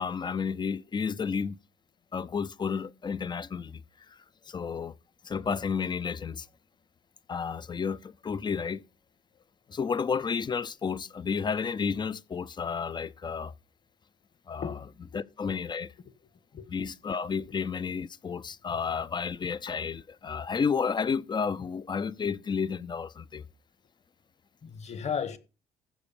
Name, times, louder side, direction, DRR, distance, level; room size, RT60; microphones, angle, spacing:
voice 1, 0.0-1.6 2.1-3.8 4.5-4.9 5.2-6.5 7.3-8.8 9.7-13.5 14.5-14.6 15.1-15.9 16.7-23.5, left 6 dB, 25° left, 0.5 m, -31 dB
voice 2, 24.6-25.4, left 7 dB, 40° left, 1.5 m, -34 dB
15.0 x 5.1 x 7.0 m
cardioid pair, 110°, 17 cm